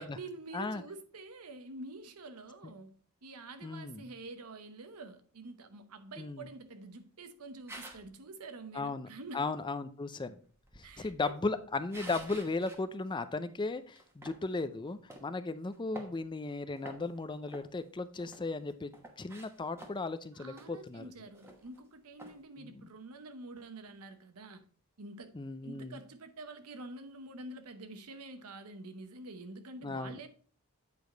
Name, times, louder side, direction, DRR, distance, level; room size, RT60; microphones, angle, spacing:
voice 1, 0.0-2.9 3.2-9.5 10.8-11.3 20.4-24.6 25.0-25.3 25.6-30.3, right 2 dB, 85° right, 0.9 m, -47 dB
voice 2, 3.6-4.1 6.2-6.5 8.7-9.1 9.3-10.4 10.8-21.1 22.6-22.8 25.3-26.0 29.8-30.3, left 3 dB, 20° left, 0.4 m, -36 dB
sound 1, 7.7-8.1 10.5-12.8 13.2-13.3 14.0-14.4 15.1-15.3 15.7-16.5 16.8-17.2 17.5-18.5 18.9-20.2 20.6-20.7 21.0-21.1 21.3-21.8 22.2-22.4, right 1 dB, 10° right, 1.1 m, -49 dB
8.5 x 4.9 x 3.9 m
head